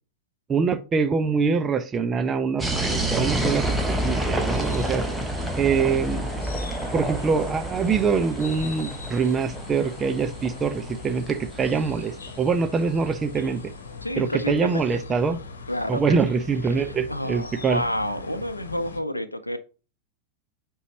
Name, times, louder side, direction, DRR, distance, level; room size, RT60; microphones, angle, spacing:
voice 1, 0.5-5.0 5.6-6.3 6.9-13.7 14.2-15.4 15.9-17.8, right 5 dB, 20° right, 0.8 m, -24 dB
sound 1, 2.6-13.3, right 1 dB, 5° right, 1.1 m, -29 dB
sound 2, 2.8-19.0, left 4 dB, 70° left, 1.2 m, -40 dB
voice 2, 14.0-14.8 15.7-16.3 16.8-19.6, left 1 dB, 85° left, 0.6 m, -29 dB
8.2 x 4.7 x 2.8 m
figure-of-eight pair, 90°, 0 cm